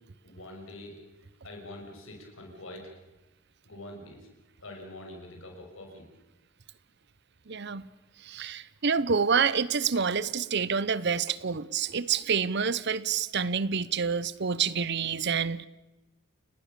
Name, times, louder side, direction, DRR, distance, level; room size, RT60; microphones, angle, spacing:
voice 1, 0.2-1.0 1.4-2.9 3.6-4.3 4.6-6.1, left 1 dB, 70° left, 6.6 m, -44 dB
voice 2, 7.5-7.9 8.2-15.7, right 6 dB, 55° right, 0.8 m, -28 dB
30.0 x 19.0 x 6.9 m
head